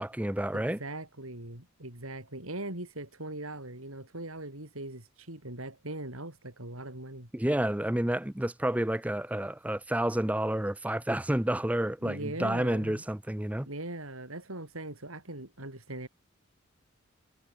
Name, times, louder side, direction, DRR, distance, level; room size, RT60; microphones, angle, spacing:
voice 1, 0.0-0.8 7.3-13.7, right 1 dB, 5° right, 0.6 m, -30 dB
voice 2, 0.5-7.3 12.0-13.0 13.6-16.1, right 1 dB, 80° right, 6.3 m, -40 dB
head